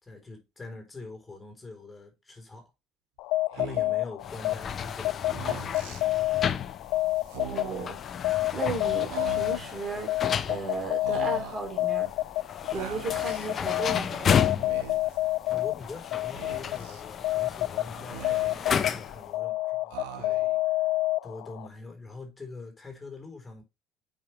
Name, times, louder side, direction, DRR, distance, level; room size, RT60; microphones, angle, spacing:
voice 1, 0.0-2.7 3.5-5.5 15.5-20.8 21.2-23.6, left 3 dB, 20° left, 3.8 m, -44 dB
sound 1, 3.2-21.7, left 17 dB, 75° left, 0.3 m, -30 dB
Speech, 3.5-4.1 5.2-6.0 7.2-7.9 9.1-9.8 11.0-11.7 12.7-13.5 14.5-15.2 16.3-17.0 17.9-18.8 19.9-20.6, right 10 dB, 80° right, 1.1 m, -42 dB
sound 2, 4.2-19.3, left 7 dB, 45° left, 0.7 m, -33 dB
voice 2, 7.4-8.0 8.5-10.1 10.5-12.1 12.7-14.5, right 3 dB, 35° right, 3.0 m, -35 dB
8.6 x 5.3 x 3.3 m
supercardioid pair, 75°, 0 cm